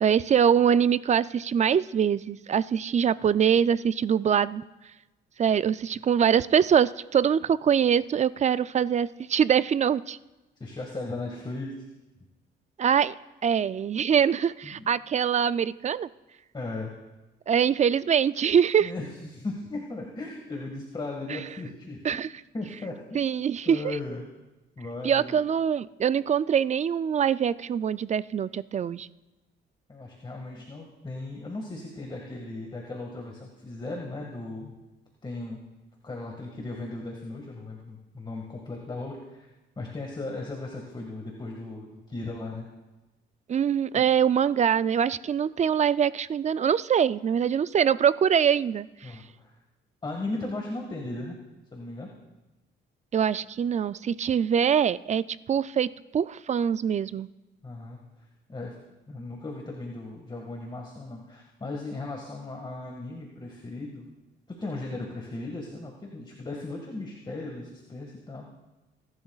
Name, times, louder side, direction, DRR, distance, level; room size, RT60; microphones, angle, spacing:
voice 1, 0.0-4.6 5.4-10.2 12.8-13.1 13.4-16.1 17.5-18.9 21.3-21.4 22.0-22.3 23.1-24.0 25.0-29.1 43.5-49.1 53.1-57.3, right 8 dB, 35° right, 17 dB, 0.4 m, -24 dB
voice 2, 10.6-11.8 14.6-14.9 16.5-16.9 18.8-22.2 22.5-23.2 23.7-24.2 24.8-25.4 29.9-34.8 35.2-35.6 36.0-39.5 39.8-42.7 43.9-44.0 49.0-49.5 50.0-51.4 51.7-52.1 57.6-58.8 59.1-64.1 64.5-68.5, left 2 dB, 25° left, 0 dB, 1.8 m, -37 dB
21.0 x 11.5 x 2.4 m, 1.1 s
cardioid pair, 90°, 20 cm